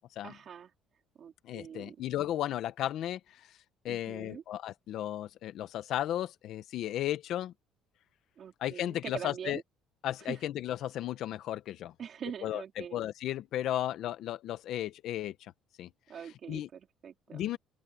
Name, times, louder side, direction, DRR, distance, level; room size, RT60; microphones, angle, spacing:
voice 1, 0.2-0.7 1.2-2.0 3.9-4.4 8.4-9.6 10.2-10.4 12.0-13.0 16.1-17.4, right 8 dB, 40° right, 3.3 m, -43 dB
voice 2, 1.4-3.2 3.8-7.5 8.6-9.6 10.0-11.9 12.4-15.5 15.8-15.9 16.5-16.7 17.3-17.6, left 12 dB, 60° left, 1.0 m, -34 dB
open air
cardioid pair, 155°, 0 cm